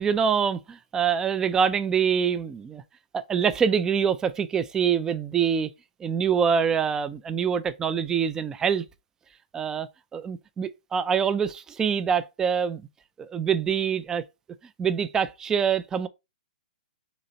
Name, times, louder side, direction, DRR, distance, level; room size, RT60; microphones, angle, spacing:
voice 1, 0.0-2.8 3.1-5.7 6.0-8.8 9.5-12.8 13.2-14.2 14.8-16.1, right 7 dB, 15° right, 0.4 m, -25 dB
4.0 x 3.2 x 3.9 m
hypercardioid pair, 135°, 4 cm